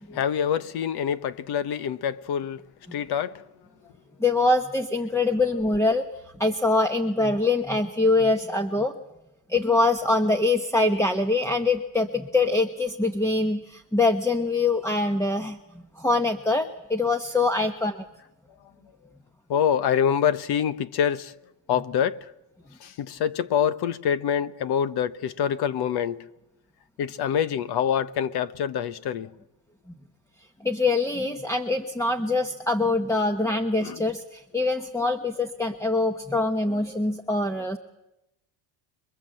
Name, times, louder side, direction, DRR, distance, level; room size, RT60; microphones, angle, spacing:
voice 1, 0.1-2.6 2.9-3.4 19.5-21.3 21.7-22.3 22.8-26.3 27.0-29.3 33.8-34.0, left 8 dB, 55° left, 1.2 m, -26 dB
voice 2, 4.2-6.1 6.4-8.9 9.5-15.6 16.0-18.0 30.6-37.8, left 2 dB, 5° left, 1.1 m, -24 dB
28.0 x 22.5 x 7.8 m
cardioid pair, 115°, 46 cm